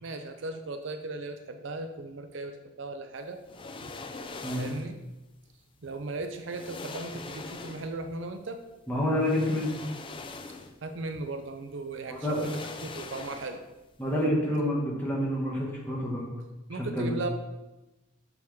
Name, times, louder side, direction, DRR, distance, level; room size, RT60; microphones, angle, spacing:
voice 1, 0.0-3.4 4.5-5.0 5.8-8.6 10.8-13.6 16.7-17.3, right 3 dB, 65° right, 7 dB, 0.5 m, -37 dB
sound 1, 3.4-5.0 6.0-6.1 6.5-8.1 9.2-10.9 11.2-11.4 12.2-13.8 14.0-14.2, left 3 dB, 25° left, 0.4 m, -42 dB
voice 2, 8.9-9.7 12.1-12.5 14.0-16.2 16.7-17.1, left 1 dB, 10° left, -5 dB, 1.7 m, -28 dB
6.8 x 6.2 x 3.6 m, 1.1 s
head